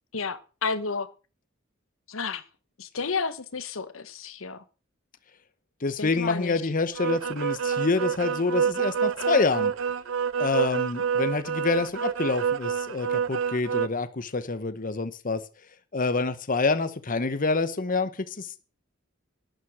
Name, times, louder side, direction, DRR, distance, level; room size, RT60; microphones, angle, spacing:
voice 1, 0.1-1.1 2.1-2.4 2.8-4.6 6.0-6.6, left 4 dB, 80° left, 1.0 m, -31 dB
voice 2, 5.8-9.7 10.4-15.4 15.9-18.6, left 3 dB, 40° left, 0.9 m, -27 dB
sound 1, 7.0-13.9, right 7 dB, 70° right, 0.6 m, -27 dB
11.5 x 9.0 x 6.2 m
head